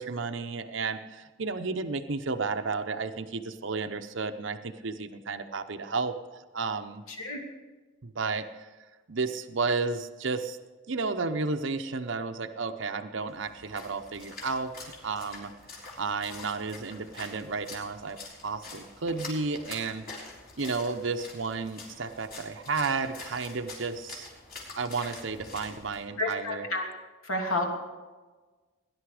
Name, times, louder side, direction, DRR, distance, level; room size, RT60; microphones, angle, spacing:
voice 1, 0.0-7.0 8.0-8.7 9.1-10.6 10.9-15.5 16.0-18.2 18.4-20.0 20.6-24.3 24.8-26.6, right 4 dB, 60° right, 7 dB, 0.7 m, -32 dB
voice 2, 7.1-7.4 26.2-26.8 27.2-27.7, left 1 dB, 75° left, 2 dB, 2.9 m, -30 dB
Splash splatter, 13.3-26.0, left 3 dB, 45° left, 3.9 m, -46 dB
19.0 x 10.5 x 4.9 m, 1.3 s
head